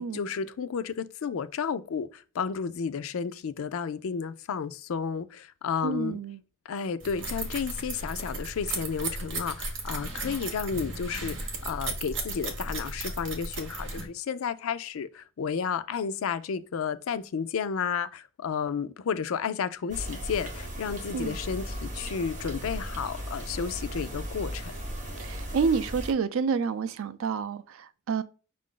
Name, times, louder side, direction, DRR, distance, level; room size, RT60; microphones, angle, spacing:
voice 1, 0.0-6.2 6.7-24.7, left 6 dB, 80° left, 0.4 m, -32 dB
voice 2, 5.8-6.4 21.1-21.4 25.2-28.2, right 5 dB, 75° right, 0.4 m, -29 dB
sound 1, 7.0-14.1, right 2 dB, 60° right, 1.0 m, -35 dB
sound 2, 19.9-26.1, equal, 35° right, 1.0 m, -37 dB
5.6 x 2.5 x 3.7 m
head